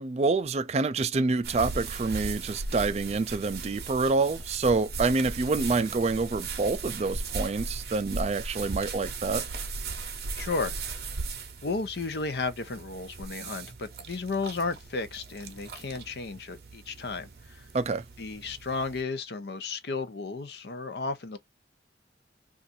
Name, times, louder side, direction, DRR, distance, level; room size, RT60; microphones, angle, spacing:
voice 1, 0.0-9.4 17.7-18.0, right 3 dB, 35° right, 0.3 m, -27 dB
sound 1, 1.4-19.0, right 3 dB, 60° right, 0.7 m, -38 dB
voice 2, 10.4-11.2 11.6-17.7 18.2-21.4, left 4 dB, 70° left, 0.6 m, -34 dB
2.5 x 2.5 x 4.1 m
head